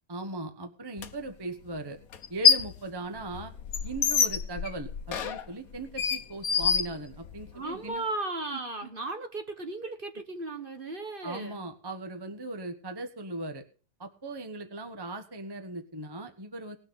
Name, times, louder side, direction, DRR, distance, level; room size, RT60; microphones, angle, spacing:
voice 1, 0.1-2.0 2.3-3.5 3.8-8.0 8.5-8.6 11.2-13.7 14.0-16.8, right 2 dB, 15° right, 7 dB, 1.1 m, -38 dB
sound 1, 1.0-1.1 2.1-2.8 3.2-7.5, left 6 dB, 65° left, 1.4 m, -26 dB
voice 2, 7.5-11.7, right 2 dB, 35° right, 6 dB, 1.5 m, -36 dB
19.0 x 6.5 x 6.8 m, 0.40 s
omnidirectional pair, 1.6 m